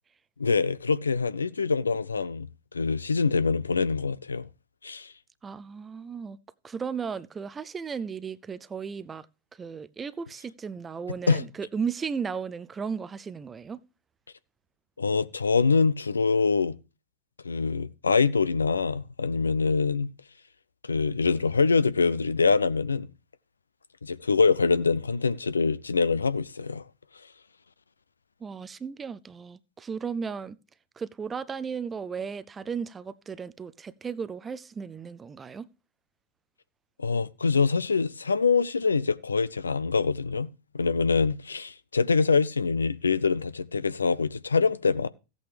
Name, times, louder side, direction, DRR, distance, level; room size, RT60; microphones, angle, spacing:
voice 1, 0.4-2.5 2.7-4.5 4.8-5.1 11.3-11.4 15.0-16.7 17.4-20.1 20.8-23.1 24.0-26.8 37.0-40.5 40.7-45.1, left 4 dB, 75° left, 0.5 m, -24 dB
voice 2, 5.4-6.4 6.6-9.3 9.6-13.8 28.4-30.6 31.0-35.7, right 6 dB, 20° right, 0.5 m, -35 dB
15.5 x 8.4 x 3.4 m
figure-of-eight pair, 90°, 0 cm